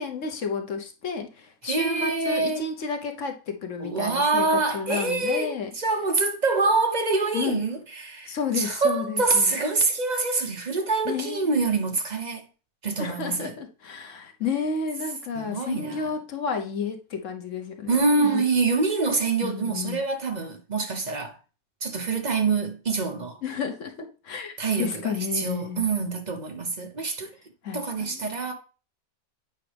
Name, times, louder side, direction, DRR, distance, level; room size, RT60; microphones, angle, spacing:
voice 1, 0.0-4.5 4.7-5.7 7.3-7.6 8.3-9.5 11.0-11.5 13.0-18.4 19.4-20.0 23.4-24.5 24.8-25.9 27.6-28.4, left 5 dB, 60° left, 1.2 m, -31 dB
voice 2, 1.6-2.6 3.8-12.4 12.8-13.5 15.3-16.1 17.9-21.4 21.8-23.4 24.6-27.3 27.7-28.5, right 3 dB, 35° right, 0.9 m, -25 dB
8.5 x 4.6 x 3.4 m
omnidirectional pair, 1.6 m